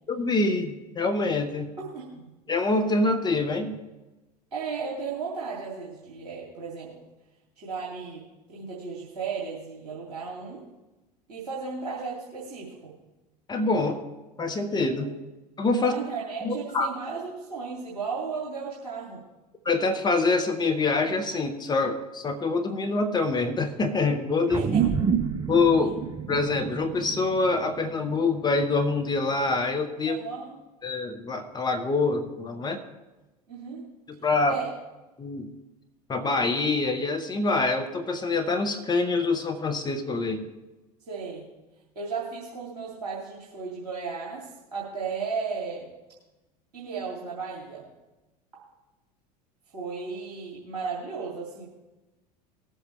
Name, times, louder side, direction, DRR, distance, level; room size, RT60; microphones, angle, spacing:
voice 1, 0.1-1.7 2.5-3.8 13.5-14.0 14.4-15.1 15.6-15.9 16.4-16.9 19.6-24.6 25.5-26.0 26.3-30.2 30.8-32.8 34.2-34.6 35.2-35.5 36.1-40.5, left 3 dB, 20° left, 6 dB, 1.2 m, -25 dB
voice 2, 1.8-2.4 4.5-7.0 7.6-8.2 8.5-10.6 11.3-13.0 15.0-15.1 15.7-19.2 24.5-24.8 30.1-30.5 33.5-33.9 34.4-34.7 41.1-41.5 41.9-45.9 46.7-47.8 49.7-51.7, right 5 dB, 65° right, -5 dB, 2.7 m, -35 dB
sound 1, 24.5-29.3, right 7 dB, 20° right, 0.8 m, -29 dB
19.5 x 8.0 x 3.3 m, 1.1 s
figure-of-eight pair, 75°, 21 cm